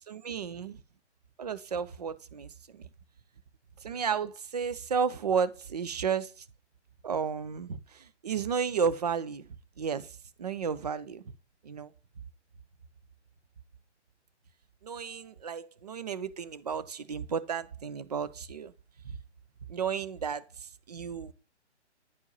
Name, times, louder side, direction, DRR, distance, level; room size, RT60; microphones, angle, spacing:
voice 1, 0.1-0.8 1.4-2.8 3.8-6.4 7.0-9.5 9.8-11.2 11.6-11.9 14.8-18.7 19.0-19.1 19.7-21.3, right 6 dB, 35° right, 0.4 m, -33 dB
9.8 x 4.4 x 2.7 m
figure-of-eight pair, 135°, 35 cm